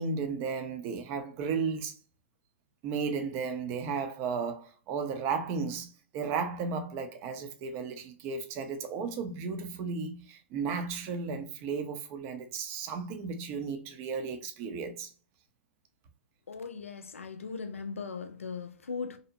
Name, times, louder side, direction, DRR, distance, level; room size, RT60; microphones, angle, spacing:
voice 1, 0.0-2.0 2.8-15.1, right 5 dB, 35° right, 0.5 m, -34 dB
voice 2, 16.5-19.2, left 5 dB, 85° left, 0.4 m, -38 dB
2.7 x 2.1 x 2.6 m
hypercardioid pair, 120°, 7 cm